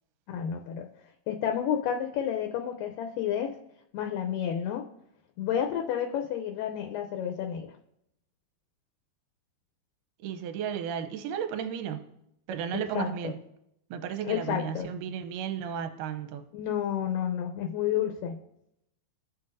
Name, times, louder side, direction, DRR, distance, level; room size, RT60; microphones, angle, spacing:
voice 1, 0.3-0.9 1.3-3.6 3.9-4.9 5.4-7.7 12.7-13.4 14.2-14.9 16.5-18.4, left 9 dB, 80° left, 3 dB, 2.1 m, -30 dB
voice 2, 10.2-12.2 12.5-13.4 13.9-16.5, right 8 dB, 75° right, 8 dB, 2.1 m, -34 dB
16.5 x 5.8 x 2.6 m, 0.80 s
omnidirectional pair, 4.2 m